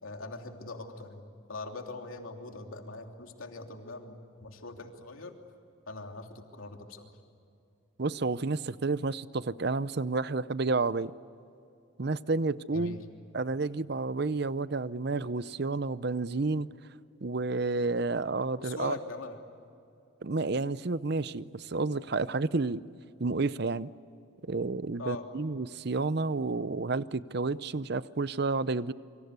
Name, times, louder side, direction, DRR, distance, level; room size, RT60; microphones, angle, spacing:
voice 1, 0.0-5.3 5.9-7.1 12.7-13.0 18.6-19.4 25.0-25.3, left 3 dB, 85° left, 3 dB, 3.1 m, -42 dB
voice 2, 8.0-11.1 12.0-13.0 13.3-16.7 17.2-19.0 20.2-22.8 23.2-23.9 24.4-28.9, right 3 dB, 50° right, 16 dB, 0.6 m, -30 dB
27.5 x 25.0 x 8.2 m, 2.6 s
head